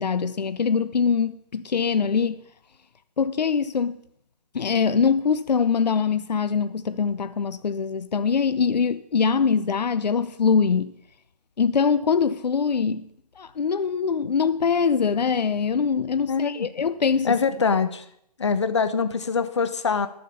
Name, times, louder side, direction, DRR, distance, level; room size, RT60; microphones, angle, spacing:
voice 1, 0.0-2.4 3.2-4.0 4.5-10.9 11.6-13.1 13.4-17.4, left 6 dB, 80° left, 0.8 m, -23 dB
voice 2, 16.3-16.7 17.2-18.1 18.4-20.1, left 5 dB, 45° left, 0.9 m, -23 dB
12.0 x 7.3 x 6.3 m
hypercardioid pair, 180°, 21 cm